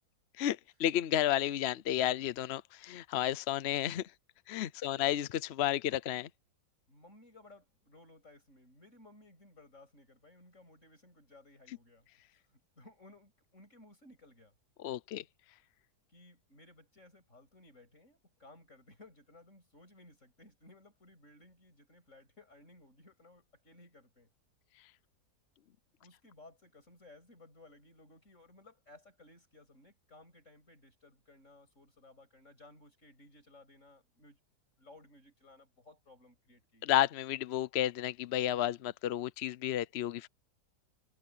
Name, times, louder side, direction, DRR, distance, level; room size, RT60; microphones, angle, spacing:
voice 1, 0.4-4.0 4.5-6.3 14.8-15.2 36.8-40.3, left 12 dB, 65° left, 0.6 m, -32 dB
voice 2, 6.9-14.5 16.1-24.3 26.0-34.4 34.8-36.9, left 2 dB, 45° left, 8.3 m, -59 dB
omnidirectional pair, 1.8 m